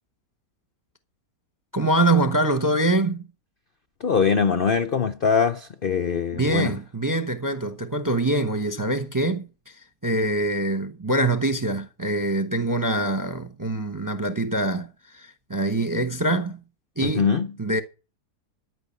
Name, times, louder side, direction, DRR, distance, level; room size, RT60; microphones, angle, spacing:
voice 1, 1.7-3.3 6.3-16.6 17.0-17.3 17.6-17.8, right 2 dB, 20° right, 0.6 m, -24 dB
voice 2, 4.0-6.7 17.0-17.5, left 6 dB, 60° left, 0.5 m, -22 dB
12.5 x 5.9 x 8.4 m
omnidirectional pair, 1.8 m